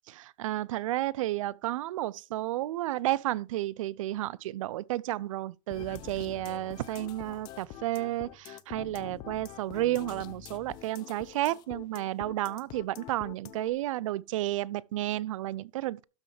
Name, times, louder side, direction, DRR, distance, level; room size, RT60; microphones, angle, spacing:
voice 1, 0.4-16.0, right 15 dB, 65° right, 0.4 m, -32 dB
sound 1, 5.7-13.7, left 13 dB, 25° left, 0.5 m, -46 dB
12.5 x 6.3 x 3.3 m
supercardioid pair, 175°, 18 cm